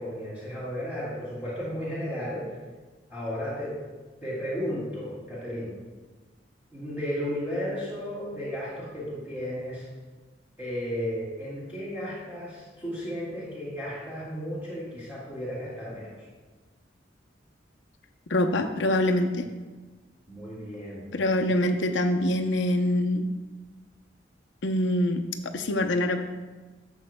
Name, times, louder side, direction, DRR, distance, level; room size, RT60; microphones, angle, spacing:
voice 1, 0.0-2.4 3.1-3.7 4.2-5.7 6.7-9.9 10.6-16.1 20.3-21.0, equal, 10° right, -11 dB, 2.6 m, -34 dB
voice 2, 18.3-19.4 21.1-23.3 24.6-26.2, left 1 dB, 85° left, 5 dB, 0.7 m, -25 dB
12.5 x 7.2 x 2.2 m, 1.3 s
head